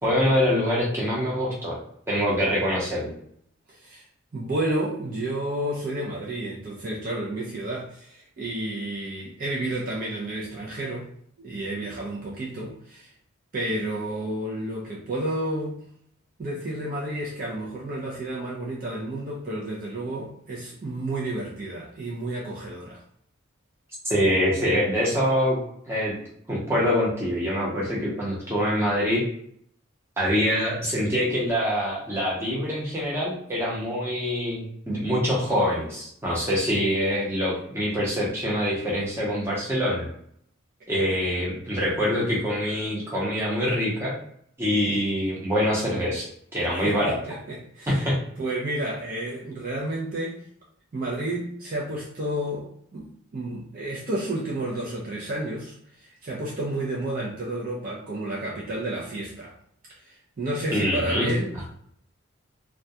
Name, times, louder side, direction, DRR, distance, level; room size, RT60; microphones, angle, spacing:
voice 1, 0.0-1.8 2.1-3.1 24.0-25.6 25.9-26.1 26.5-29.2 30.2-40.1 40.9-44.1 44.6-47.2 47.9-48.2 60.7-61.3, equal, 10° right, -6 dB, 0.7 m, -25 dB
voice 2, 3.7-4.0 4.3-11.1 11.4-13.1 13.5-15.8 16.4-23.0 44.9-45.0 46.8-48.1 48.4-50.4 50.9-59.5 60.0-61.7, right 1 dB, 40° right, -4 dB, 0.4 m, -31 dB
2.2 x 2.2 x 2.6 m, 0.67 s
head